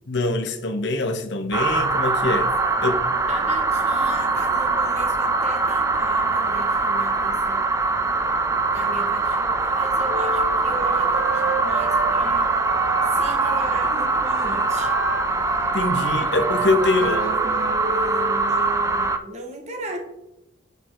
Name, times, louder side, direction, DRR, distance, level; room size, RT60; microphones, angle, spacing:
voice 1, 0.1-2.5 2.8-3.0 15.7-17.2, left 2 dB, 55° left, 0.9 m, -23 dB
sound 1, 1.5-19.2, right 3 dB, 15° right, 0.4 m, -22 dB
voice 2, 3.3-7.8 8.7-12.6 13.0-15.0 17.0-20.0, right 2 dB, 35° right, 1.7 m, -36 dB
Wind instrument woodwind instrument, 10.0-18.4, right 3 dB, 60° right, 1.2 m, -32 dB
7.1 x 6.5 x 3.9 m
head